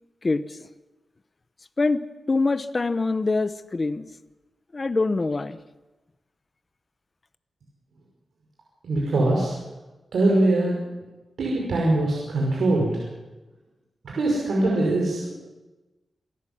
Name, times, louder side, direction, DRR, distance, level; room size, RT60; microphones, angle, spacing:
voice 1, 0.2-0.7 1.8-2.0 2.3-4.0 4.7-5.6, left 3 dB, 30° left, 12 dB, 0.9 m, -24 dB
voice 2, 8.8-9.5 10.1-10.8 11.4-13.0 14.0-15.4, right 2 dB, 80° right, -3 dB, 5.5 m, -22 dB
27.0 x 14.0 x 7.4 m, 1.1 s
wide cardioid pair, 120°, 0 cm